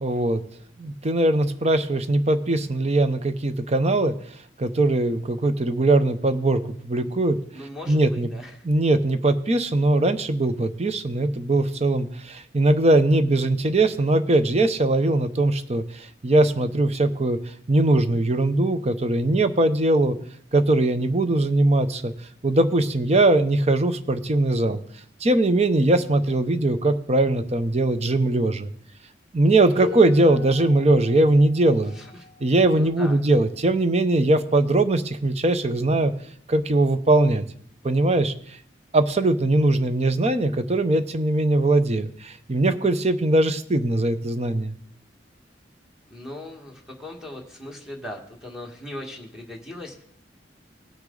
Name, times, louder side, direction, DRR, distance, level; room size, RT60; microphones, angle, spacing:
voice 1, 0.0-0.4 0.8-4.1 4.6-8.3 8.6-17.4 17.7-20.2 20.5-22.1 22.4-24.8 25.2-28.7 29.3-32.0 32.4-36.1 36.5-37.4 37.8-38.3 38.9-44.7, right 2 dB, 35° right, 10 dB, 0.7 m, -21 dB
voice 2, 7.5-8.5 29.7-29.8 32.0-32.1 32.7-33.2 46.1-50.0, left 1 dB, 5° right, 0 dB, 1.7 m, -39 dB
sound 1, 29.8-35.2 36.3-36.4 37.2-37.4, left 6 dB, 75° right, 2.5 m, -40 dB
18.0 x 6.1 x 3.9 m, 0.63 s
head